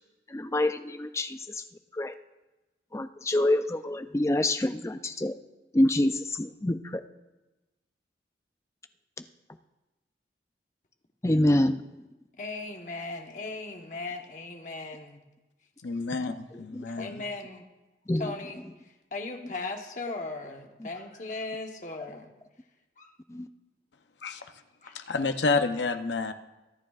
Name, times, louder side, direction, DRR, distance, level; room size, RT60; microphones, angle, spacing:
voice 1, 0.3-1.6 1.9-2.1 2.9-5.4 5.7-7.0 11.2-11.9 16.7-16.8 18.1-18.3 20.8-20.9 23.3-23.5, left 1 dB, 15° left, 9 dB, 0.4 m, -26 dB
voice 2, 12.4-15.2 16.9-17.6 18.2-18.6 19.1-22.3 23.0-23.1 24.8-25.0, left 3 dB, 45° left, 2 dB, 1.1 m, -37 dB
voice 3, 15.8-17.2 24.2-24.5 24.9-26.3, left 4 dB, 85° left, 8 dB, 0.7 m, -29 dB
24.5 x 9.1 x 2.4 m, 1.1 s
head